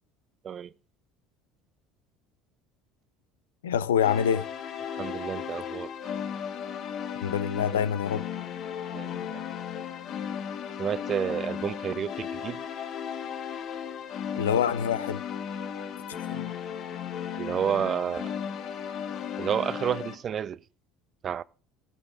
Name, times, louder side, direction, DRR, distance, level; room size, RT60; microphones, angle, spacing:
voice 1, 3.6-4.5 7.2-8.2 14.4-15.2 16.3-16.5, left 8 dB, 90° left, 0.5 m, -26 dB
sound 1, 4.0-20.1, left 8 dB, 55° left, 1.4 m, -35 dB
voice 2, 4.9-5.9 8.9-9.4 10.8-12.6 17.3-18.3 19.4-20.6 21.2-21.4, right 8 dB, 45° right, 0.5 m, -30 dB
16.0 x 12.5 x 2.5 m
hypercardioid pair, 75°, 0 cm